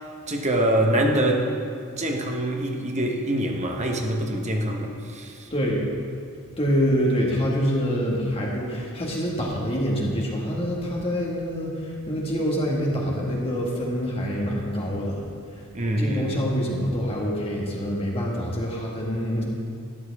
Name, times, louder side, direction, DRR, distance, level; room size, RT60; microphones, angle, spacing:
voice 1, 0.3-1.7 2.0-5.3 15.7-16.4, right 1 dB, 35° right, 2 dB, 1.1 m, -24 dB
voice 2, 5.5-5.9 6.6-15.6 16.0-19.4, equal, 25° left, -3 dB, 1.8 m, -26 dB
12.5 x 10.5 x 3.6 m, 2.3 s
head